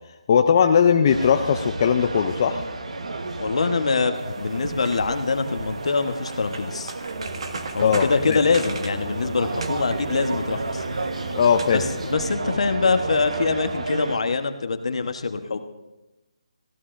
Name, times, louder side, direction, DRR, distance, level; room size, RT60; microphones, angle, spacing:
voice 1, 0.3-2.6 7.8-8.4 11.4-11.8, left 7 dB, 30° left, 5 dB, 0.5 m, -19 dB
sound 1, 1.1-14.2, right 3 dB, 75° right, 1.3 m, -32 dB
voice 2, 3.4-6.9 7.7-10.8 11.7-15.6, left 4 dB, 65° left, 7 dB, 1.3 m, -24 dB
sound 2, 4.1-12.1, right 3 dB, 55° right, 1.5 m, -39 dB
sound 3, 7.1-13.9, right 2 dB, 25° right, 2.0 m, -38 dB
23.5 x 16.0 x 2.6 m, 1.0 s
hypercardioid pair, 170°, 4 cm